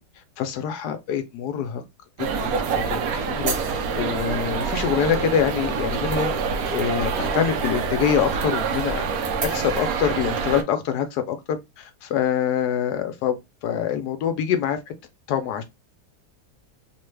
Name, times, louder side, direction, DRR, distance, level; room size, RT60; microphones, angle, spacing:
voice 1, 0.4-1.8 2.2-6.4 6.7-9.1 9.4-14.8 15.3-15.6, left 8 dB, 85° left, 1.1 m, -25 dB
sound 1, 2.2-10.6, right 5 dB, 70° right, 1.0 m, -26 dB
3.1 x 2.2 x 3.1 m
omnidirectional pair, 1.7 m